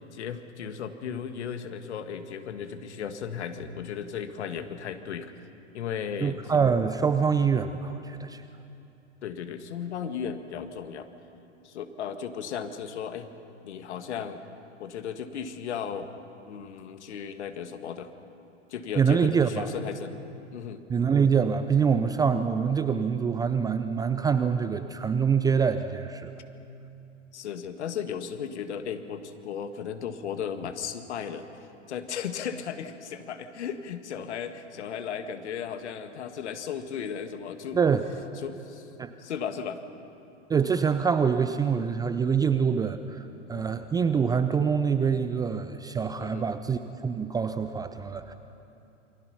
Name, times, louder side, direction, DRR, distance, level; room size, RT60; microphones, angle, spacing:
voice 1, 0.1-5.3 5.7-6.4 9.2-11.1 11.6-13.3 13.6-14.4 14.8-16.1 16.5-18.1 18.7-20.1 20.5-20.8 27.3-31.5 31.9-37.8 38.4-38.9 39.2-39.8 42.4-42.5 46.2-46.5, left 7 dB, 60° left, 8 dB, 1.8 m, -35 dB
voice 2, 6.2-8.4 19.0-19.7 20.9-26.3 37.7-38.1 39.0-39.1 40.5-48.3, right 6 dB, 10° right, 10 dB, 0.5 m, -25 dB
28.5 x 23.5 x 5.7 m, 2.7 s
figure-of-eight pair, 100°, 38 cm